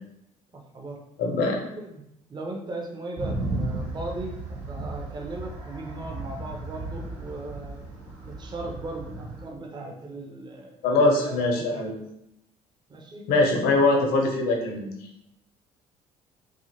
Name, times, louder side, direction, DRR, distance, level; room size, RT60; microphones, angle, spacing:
voice 1, 0.5-1.0 1.7-2.0 2.3-7.8 8.2-11.9 12.9-13.2, right 2 dB, 25° right, 1 dB, 0.5 m, -38 dB
voice 2, 1.2-1.6 10.8-12.0 13.3-15.0, left 2 dB, 55° left, 1 dB, 0.7 m, -22 dB
sound 1, 3.2-9.4, right 2 dB, 85° right, 0.8 m, -35 dB
2.7 x 2.5 x 2.7 m, 0.79 s
figure-of-eight pair, 50°, 18 cm